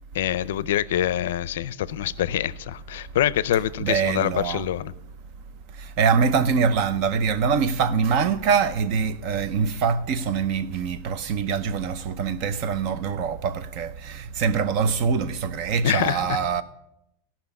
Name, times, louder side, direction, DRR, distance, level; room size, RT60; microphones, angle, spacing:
voice 1, 0.1-4.9 15.8-16.4, left 12 dB, 75° left, 0.5 m, -25 dB
voice 2, 3.8-4.7 5.8-16.6, right 6 dB, 40° right, 0.6 m, -24 dB
15.5 x 5.9 x 7.0 m
supercardioid pair, 160°, 0 cm